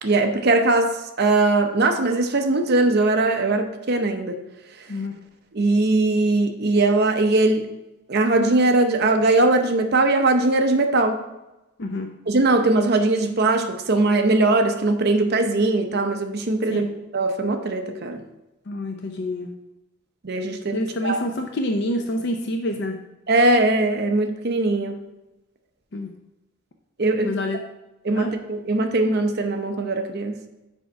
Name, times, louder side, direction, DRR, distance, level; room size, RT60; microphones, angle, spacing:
voice 1, 0.0-4.4 5.5-7.7 8.1-11.2 12.3-16.9 17.1-18.2 20.2-21.2 23.3-25.0 27.0-27.4 28.0-30.3, right 2 dB, 50° right, 6 dB, 0.7 m, -20 dB
voice 2, 18.7-19.5 20.7-23.0 25.9-26.1 27.2-27.6 28.1-28.3, left 1 dB, 55° left, 4 dB, 0.6 m, -27 dB
6.3 x 5.2 x 4.7 m, 0.98 s
head